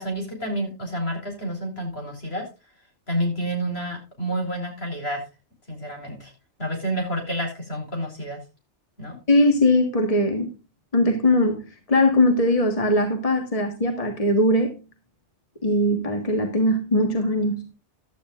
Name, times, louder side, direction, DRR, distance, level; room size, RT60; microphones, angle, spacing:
voice 1, 0.0-2.5 3.1-5.2 5.7-6.3 6.6-8.4 9.0-9.2, right 1 dB, 60° left, 4.9 m, -29 dB
voice 2, 9.3-10.5 10.9-14.7 15.6-17.7, left 1 dB, 30° left, 1.7 m, -20 dB
15.5 x 11.5 x 2.5 m
omnidirectional pair, 1.2 m